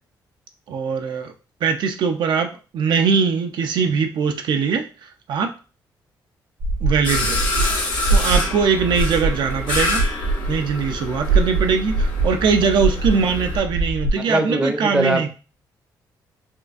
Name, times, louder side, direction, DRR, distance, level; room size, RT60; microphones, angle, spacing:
voice 1, 0.7-1.3 1.6-5.5 6.8-7.4 7.7-10.0 10.5-15.3, right 5 dB, 70° right, 5 dB, 0.5 m, -21 dB
sound 1, 6.6-14.1, right 3 dB, 90° right, 1.1 m, -23 dB
sound 2, 7.0-13.6, left 2 dB, 85° left, 1.1 m, -28 dB
voice 2, 14.3-15.3, right 1 dB, 10° right, 5 dB, 0.6 m, -21 dB
4.3 x 2.5 x 2.4 m, 0.35 s
cardioid pair, 100°, 8 cm